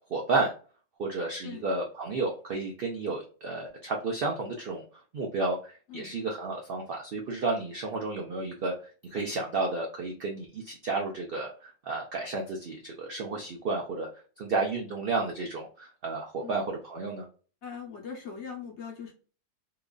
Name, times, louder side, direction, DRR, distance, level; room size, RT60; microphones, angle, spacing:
voice 1, 0.1-0.5 1.0-4.8 5.1-14.1 14.4-17.2, right 3 dB, 70° right, 1 dB, 0.5 m, -32 dB
voice 2, 17.6-19.1, left 6 dB, 55° left, -1 dB, 1.0 m, -41 dB
2.9 x 2.4 x 2.2 m, 0.39 s
omnidirectional pair, 1.6 m